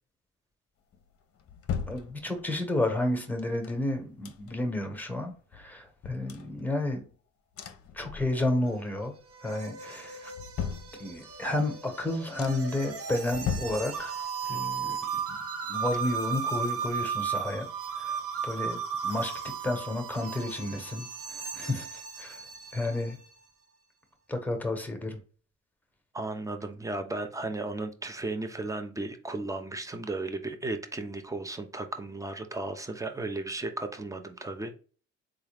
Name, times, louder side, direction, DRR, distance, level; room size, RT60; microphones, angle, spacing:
sound 1, 0.9-2.7 3.4-4.8 5.2-5.3 5.5-7.1 7.5-8.7 9.0-9.5 10.0-11.5 11.9-12.0 12.4-12.8 13.3-14.5 14.8-16.6 16.9-17.0, left 7 dB, 50° left, 0.7 m, -39 dB
voice 1, 1.9-7.0 7.9-9.1 9.4-10.3 11.0-14.2 14.4-15.0 15.7-17.7 18.0-22.5 22.7-23.2 24.3-25.2, left 2 dB, 5° left, 1.0 m, -31 dB
sound 2, 8.7-23.3, right 6 dB, 50° right, 0.7 m, -36 dB
voice 2, 26.1-34.8, right 2 dB, 10° right, 0.5 m, -35 dB
3.6 x 2.5 x 3.3 m
cardioid pair, 90°, 30 cm